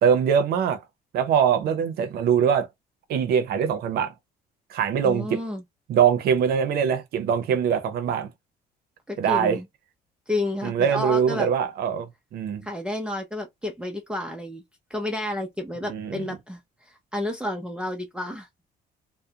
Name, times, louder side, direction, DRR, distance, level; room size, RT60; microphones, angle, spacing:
voice 1, 0.0-0.8 1.1-2.7 3.1-4.1 4.7-5.4 5.9-8.3 9.2-9.6 10.6-12.7 15.9-16.2, right 7 dB, 70° right, 0.6 m, -22 dB
voice 2, 5.0-5.6 9.1-9.7 10.3-11.5 12.6-14.6 14.9-18.5, left 1 dB, 5° right, 0.5 m, -31 dB
2.3 x 2.1 x 2.7 m
cardioid pair, 110°, 17 cm